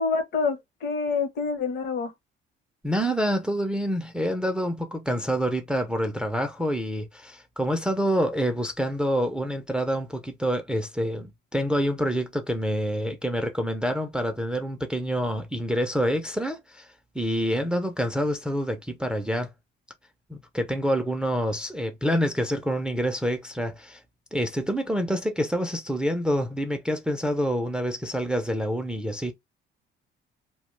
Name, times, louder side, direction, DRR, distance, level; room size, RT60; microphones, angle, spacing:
voice 1, 0.0-2.1, left 4 dB, 55° left, 0.8 m, -27 dB
voice 2, 2.8-16.9 17.1-19.5 20.3-24.0 24.3-29.3, equal, 5° right, 0.3 m, -27 dB
2.3 x 2.1 x 3.0 m
cardioid pair, 120°, 20 cm